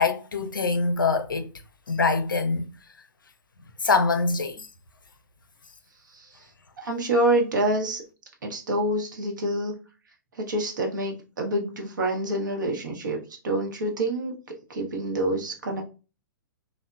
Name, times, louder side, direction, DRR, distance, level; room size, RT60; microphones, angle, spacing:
voice 1, 0.0-1.5 1.9-2.7 3.8-4.7, left 4 dB, 85° left, 0.4 m, -24 dB
voice 2, 6.8-8.0 8.4-9.7 10.4-13.2 13.4-15.8, right 1 dB, 70° right, 0.8 m, -27 dB
2.8 x 2.1 x 2.2 m
figure-of-eight pair, 110°, 11 cm